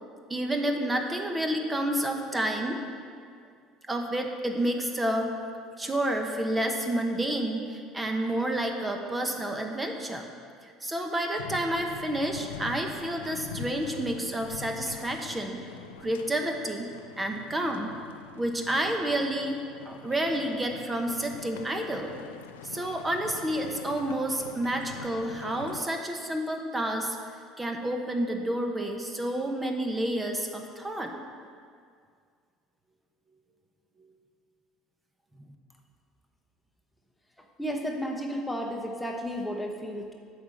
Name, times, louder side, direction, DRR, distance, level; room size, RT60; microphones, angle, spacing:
voice 1, 0.3-2.8 3.9-5.3 5.8-10.2 10.6-15.6 16.0-16.9 17.2-17.9 18.4-19.6 19.8-22.1 22.6-27.2 27.6-31.2, right 1 dB, 20° right, 3 dB, 1.1 m, -29 dB
sound 1, 11.4-25.8, left 7 dB, 90° left, 0.4 m, -44 dB
voice 2, 37.6-40.1, equal, 10° left, 2 dB, 1.0 m, -33 dB
8.6 x 5.0 x 7.3 m, 2.2 s
hypercardioid pair, 75°, 0 cm